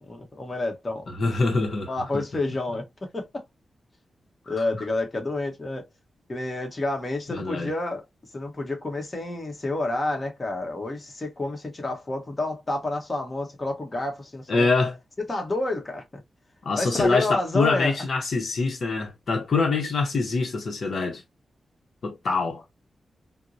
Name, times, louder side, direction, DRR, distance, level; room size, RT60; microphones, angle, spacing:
voice 1, 0.1-1.1 1.9-3.4 4.5-5.9 6.3-8.1 8.3-14.7 15.2-16.2 16.8-18.0, left 2 dB, 30° left, 1.0 m, -29 dB
voice 2, 1.1-2.2 7.3-7.7 14.5-14.9 16.6-21.2 22.0-22.6, left 3 dB, 65° left, 0.7 m, -25 dB
4.2 x 2.0 x 2.5 m
wide cardioid pair, 115°, 0 cm